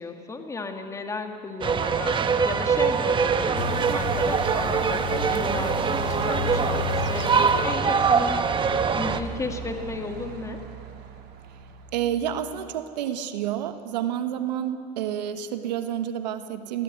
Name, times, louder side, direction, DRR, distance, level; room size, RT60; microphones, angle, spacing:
voice 1, 0.0-10.6, left 3 dB, 15° left, 5 dB, 2.0 m, -34 dB
sound 1, 1.6-9.2, right 6 dB, 25° right, 1.1 m, -23 dB
sound 2, 3.6-7.9, left 11 dB, 90° left, 0.7 m, -33 dB
Truck, 4.6-12.9, right 7 dB, 50° right, 3.2 m, -43 dB
voice 2, 11.9-16.8, right 10 dB, 85° right, 9 dB, 1.3 m, -29 dB
20.0 x 17.0 x 9.4 m, 2.3 s
supercardioid pair, 110°, 21 cm